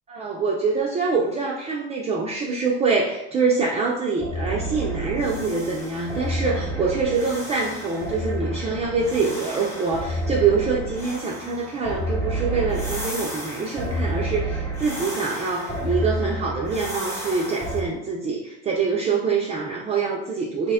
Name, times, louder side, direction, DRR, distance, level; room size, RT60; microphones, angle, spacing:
voice 1, 0.1-20.7, right 4 dB, 20° right, -2 dB, 0.4 m, -25 dB
sound 1, 4.2-17.8, right 1 dB, 10° left, 0.9 m, -30 dB
3.3 x 2.1 x 3.5 m, 0.86 s
supercardioid pair, 95°, 31 cm